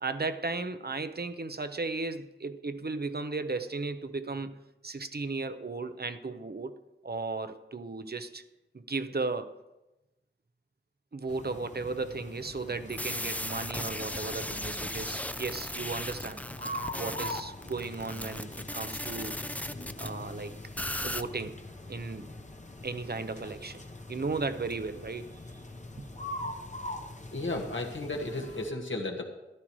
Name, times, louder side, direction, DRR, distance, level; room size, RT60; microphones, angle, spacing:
voice 1, 0.0-4.5 4.8-6.8 7.0-8.4 8.7-9.5 11.1-16.4 16.9-19.4 20.0-20.5 21.0-21.6 21.9-22.3 22.8-23.8 24.1-25.3 26.0-26.1, right 3 dB, 55° right, 9 dB, 0.7 m, -35 dB
sound 1, 11.3-28.7, left 1 dB, 35° left, 0.9 m, -43 dB
sound 2, 12.9-20.1 20.8-21.2, left 1 dB, 5° left, 0.5 m, -37 dB
voice 2, 27.3-29.2, left 2 dB, 75° left, 1 dB, 1.6 m, -34 dB
14.0 x 11.5 x 3.1 m, 1.0 s
wide cardioid pair, 40°, 20 cm